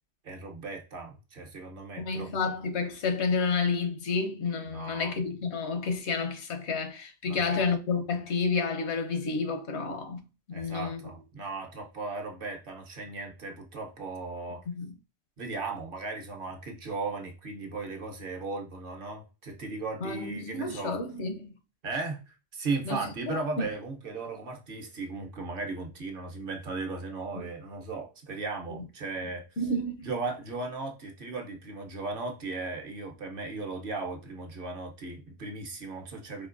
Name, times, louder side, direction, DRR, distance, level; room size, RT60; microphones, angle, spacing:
voice 1, 0.2-2.5 4.7-5.1 7.3-7.6 10.5-14.6 15.4-21.0 21.8-29.4 30.0-36.5, right 3 dB, 55° right, 0.9 m, -36 dB
voice 2, 2.0-10.2 10.5-11.0 14.7-14.9 20.0-21.5 22.9-23.7 27.3-27.4 29.6-30.1, left 4 dB, 80° left, 1.0 m, -30 dB
4.4 x 2.8 x 2.4 m
omnidirectional pair, 1.1 m